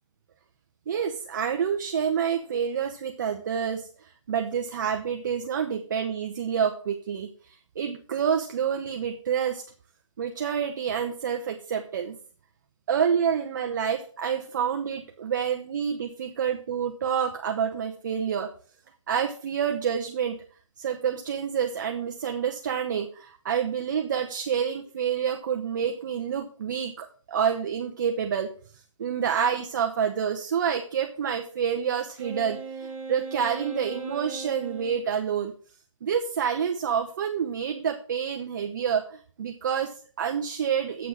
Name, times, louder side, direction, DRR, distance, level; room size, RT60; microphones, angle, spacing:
voice 1, 0.9-9.6 10.2-12.2 12.9-18.5 19.1-20.4 20.8-28.5 29.0-35.5 36.0-41.1, right 7 dB, 35° right, 4 dB, 0.8 m, -28 dB
Wind instrument woodwind instrument, 32.2-35.0, right 4 dB, 10° right, 1.0 m, -38 dB
8.0 x 6.0 x 6.2 m, 0.42 s
hypercardioid pair, 160°, 16 cm